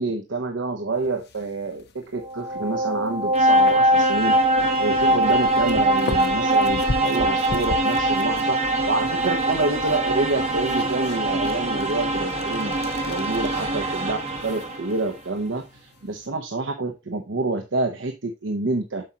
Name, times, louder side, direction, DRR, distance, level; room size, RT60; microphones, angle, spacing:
voice 1, 0.0-4.4 4.8-12.8 13.0-19.0, right 2 dB, 80° right, 5 dB, 0.9 m, -27 dB
sound 1, 0.9-16.3, left 2 dB, 60° left, 1.1 m, -39 dB
sound 2, 2.2-15.0, right 1 dB, 35° right, 1.4 m, -22 dB
7.8 x 5.7 x 2.9 m, 0.24 s
head